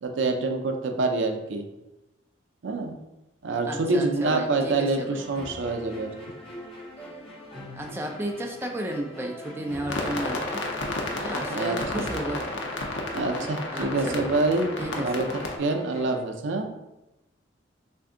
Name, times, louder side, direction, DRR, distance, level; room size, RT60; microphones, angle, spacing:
voice 1, 0.0-1.6 2.6-3.0 3.4-6.1 11.5-12.0 13.1-16.7, right 3 dB, 75° right, 5 dB, 0.5 m, -26 dB
voice 2, 3.7-5.2 7.7-10.6 11.2-12.6 13.4-14.3 14.8-15.3, right 1 dB, 10° right, 1 dB, 0.3 m, -34 dB
sound 1, 5.1-16.2, equal, 30° left, 0.9 m, -42 dB
sound 2, 9.9-15.6, left 2 dB, 70° left, 0.6 m, -32 dB
3.4 x 2.5 x 3.7 m, 0.95 s
head